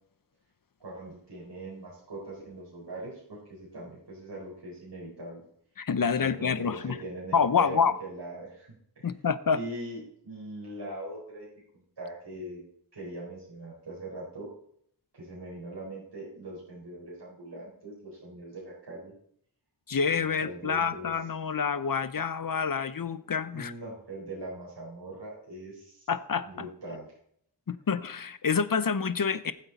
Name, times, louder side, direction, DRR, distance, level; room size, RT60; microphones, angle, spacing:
voice 1, 0.8-5.4 6.2-8.7 9.0-9.1 9.5-11.5 11.7-12.6 12.9-14.5 15.1-19.1 20.1-21.1 23.5-26.1 26.4-27.1, right 1 dB, 70° right, -6 dB, 4.6 m, -41 dB
voice 2, 5.8-7.0 7.3-8.0 9.0-9.6 19.9-23.7 26.1-26.7 27.7-29.5, left 6 dB, 50° left, 14 dB, 0.7 m, -27 dB
19.0 x 8.0 x 4.1 m, 0.68 s
wide cardioid pair, 75°, 43 cm